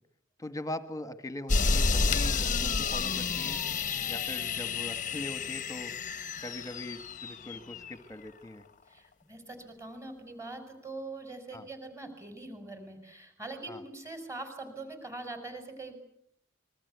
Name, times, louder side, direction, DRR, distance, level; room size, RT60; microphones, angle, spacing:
voice 1, 0.4-3.6 4.1-5.9 6.4-8.6 11.5-11.7 13.7-13.8, left 1 dB, 15° left, 10 dB, 1.5 m, -41 dB
sound 1, 1.5-7.9, left 4 dB, 35° left, 0.9 m, -30 dB
voice 2, 8.9-15.9, right 2 dB, 15° right, 7 dB, 5.7 m, -43 dB
27.0 x 22.5 x 8.2 m, 0.72 s
head